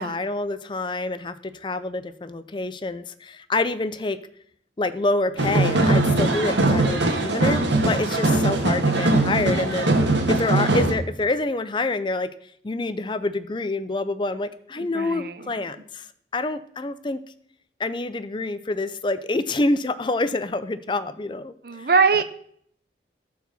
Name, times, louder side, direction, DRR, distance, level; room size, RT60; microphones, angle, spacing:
voice 1, 0.0-4.2 4.8-9.9 10.3-12.3 12.6-16.1 16.3-17.2 17.8-21.9 22.2-22.3, left 2 dB, 25° left, 0.4 m, -27 dB
sound 1, 5.4-10.9, right 2 dB, 80° right, 1.7 m, -21 dB
voice 2, 14.8-15.5 21.6-22.2, right 5 dB, 55° right, 0.7 m, -22 dB
13.0 x 4.7 x 6.9 m
head